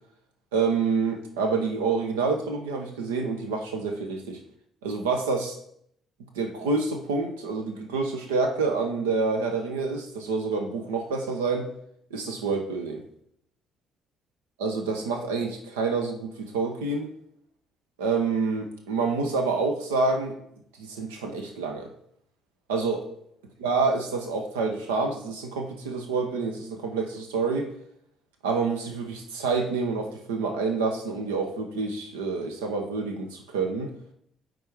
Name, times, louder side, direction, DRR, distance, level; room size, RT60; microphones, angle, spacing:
voice 1, 0.5-4.4 4.8-5.6 6.3-11.7 12.1-13.0 14.6-17.1 18.0-20.4 20.8-21.9 22.7-23.1 23.6-27.7 28.4-33.9, right 4 dB, 70° right, 4 dB, 1.0 m, -27 dB
9.2 x 4.0 x 4.7 m, 0.68 s
figure-of-eight pair, 45°, 0 cm